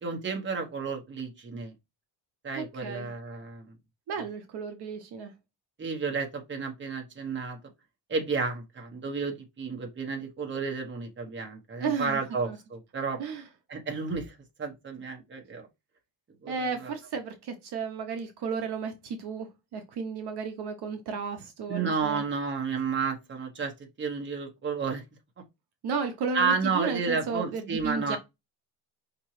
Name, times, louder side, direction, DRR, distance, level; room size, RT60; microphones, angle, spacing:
voice 1, 0.0-1.7 2.4-3.7 5.8-7.6 8.1-13.2 13.7-15.7 16.4-16.5 16.8-16.9 21.7-23.7 24.0-25.0 26.3-28.2, right 5 dB, 25° right, 1.1 m, -31 dB
voice 2, 2.5-3.1 4.1-5.3 11.8-12.2 12.5-12.6 13.2-13.4 16.5-22.2 25.8-28.2, right 5 dB, 60° right, 0.8 m, -33 dB
5.2 x 2.9 x 3.1 m
cardioid pair, 155°, 44 cm